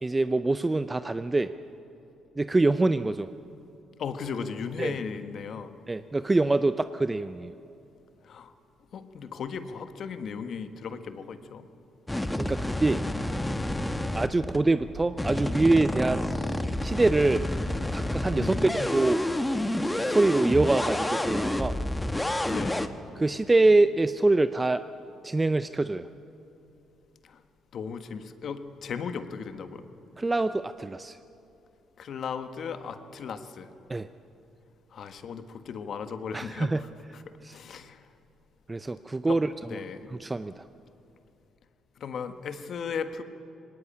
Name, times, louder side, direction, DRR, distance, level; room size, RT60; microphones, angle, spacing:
voice 1, 0.0-1.5 2.4-3.3 4.8-4.9 5.9-7.5 12.4-13.0 14.1-16.3 16.8-17.4 17.9-19.2 20.0-21.7 23.2-24.8 25.2-26.1 30.2-31.2 33.9-34.1 36.3-36.8 37.4-37.6 38.7-39.5 40.1-40.6, right 2 dB, 20° right, 12 dB, 0.6 m, -25 dB
voice 2, 4.0-5.7 8.2-8.5 8.9-11.7 18.3-18.8 22.5-22.9 27.2-27.4 27.7-29.8 32.0-33.7 34.9-36.9 37.1-38.0 39.3-39.4 39.7-40.2 42.0-43.2, left 6 dB, 60° left, 9 dB, 1.4 m, -36 dB
sound 1, 12.1-14.6 15.2-22.9, left 1 dB, 10° left, 1.2 m, -29 dB
sound 2, 12.5-17.5, right 1 dB, 75° right, 7.3 m, -45 dB
19.0 x 18.5 x 8.6 m, 2.7 s
supercardioid pair, 65°, 0 cm